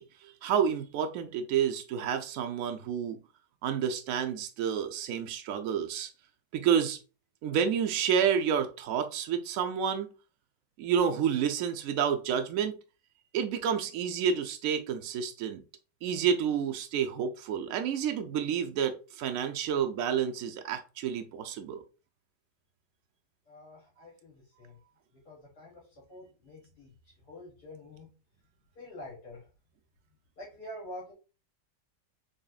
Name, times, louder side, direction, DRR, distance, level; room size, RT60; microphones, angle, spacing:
voice 1, 0.0-3.2 3.6-6.1 6.5-7.0 7.4-10.1 10.8-12.8 13.3-15.6 16.0-21.8, right 8 dB, 70° right, 0.8 m, -29 dB
voice 2, 23.5-24.8 25.1-28.1 28.8-29.5 30.4-31.1, left 1 dB, 65° left, 2.0 m, -47 dB
4.0 x 3.4 x 2.3 m
omnidirectional pair, 1.9 m